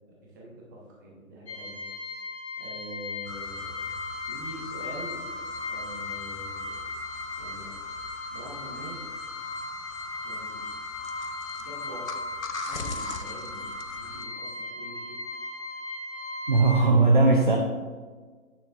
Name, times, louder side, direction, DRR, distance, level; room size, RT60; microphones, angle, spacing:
voice 1, 0.1-1.9 2.6-3.7 4.3-5.3 5.7-6.8 7.4-7.7 8.3-9.0 10.2-10.6 11.6-12.2 12.6-13.6 14.0-15.2, right 1 dB, 15° right, -4 dB, 0.9 m, -44 dB
sound 1, 1.5-16.8, left 2 dB, 50° left, 1.6 m, -37 dB
sound 2, 3.3-14.2, left 4 dB, 70° left, 0.8 m, -40 dB
voice 2, 16.5-17.6, right 3 dB, 35° right, 2 dB, 0.4 m, -19 dB
9.1 x 6.2 x 2.4 m, 1.5 s
figure-of-eight pair, 140°, 42 cm